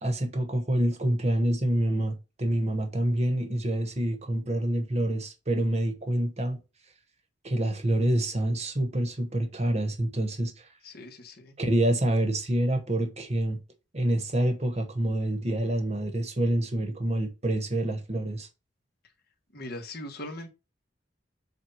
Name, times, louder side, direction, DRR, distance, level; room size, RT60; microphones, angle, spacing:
voice 1, 0.0-6.6 7.4-10.5 11.6-13.6 13.9-18.5, right 1 dB, 35° right, 1.3 m, -27 dB
voice 2, 10.8-11.6 19.5-20.5, left 1 dB, 55° left, 1.5 m, -40 dB
7.8 x 2.6 x 5.6 m
head